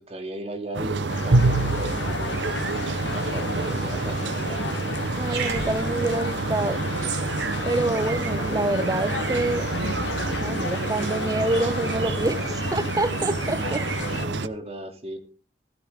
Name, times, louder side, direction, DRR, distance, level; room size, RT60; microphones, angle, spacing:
voice 1, 0.0-2.6 3.1-4.7 13.5-15.2, right 1 dB, 35° right, 2.8 m, -36 dB
sound 1, 0.7-14.5, right 3 dB, 85° right, 0.9 m, -27 dB
sound 2, 1.1-14.3, left 4 dB, 90° left, 1.0 m, -34 dB
voice 2, 5.2-6.8 7.6-9.7 10.3-13.8, right 2 dB, 20° right, 0.6 m, -27 dB
Growling, 5.2-9.8, right 4 dB, 70° right, 3.7 m, -38 dB
16.0 x 14.5 x 3.7 m
head